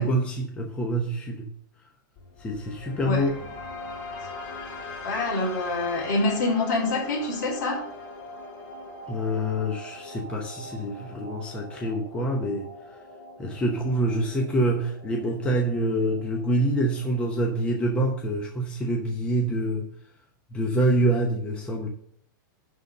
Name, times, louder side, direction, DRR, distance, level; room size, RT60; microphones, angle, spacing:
voice 1, 0.0-1.4 2.4-3.3 9.1-12.7 13.4-19.9 20.5-21.9, right 1 dB, 10° left, 1 dB, 0.8 m, -26 dB
sound 1, 2.2-18.2, left 2 dB, 40° left, 4.9 m, -42 dB
voice 2, 5.0-7.9, left 2 dB, 55° left, -1 dB, 3.6 m, -26 dB
11.0 x 4.0 x 6.6 m, 0.62 s
supercardioid pair, 165°, 11 cm